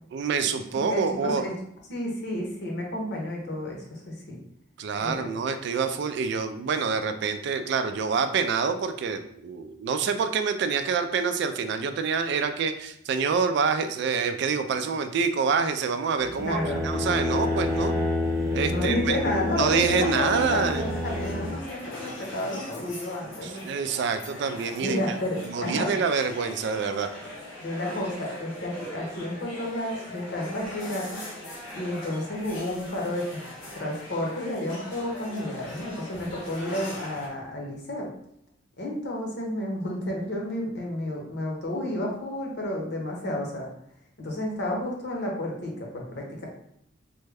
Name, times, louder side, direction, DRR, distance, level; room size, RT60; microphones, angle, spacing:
voice 1, 0.1-1.5 4.8-18.0 18.5-19.2 19.6-20.8 23.4-25.0 25.5-27.1, right 5 dB, 60° right, 9 dB, 0.3 m, -26 dB
voice 2, 0.8-1.5 1.9-4.4 5.0-5.3 16.4-16.9 18.7-23.6 24.8-26.0 27.6-31.2 31.7-33.4 33.7-38.1 38.8-43.7 44.2-46.5, left 1 dB, 60° left, -1 dB, 0.8 m, -31 dB
sound 1, 16.2-21.5, left 2 dB, 15° right, 0.9 m, -28 dB
sound 2, 19.6-37.3, left 1 dB, 85° left, 0.9 m, -41 dB
3.4 x 2.1 x 3.3 m, 0.72 s
head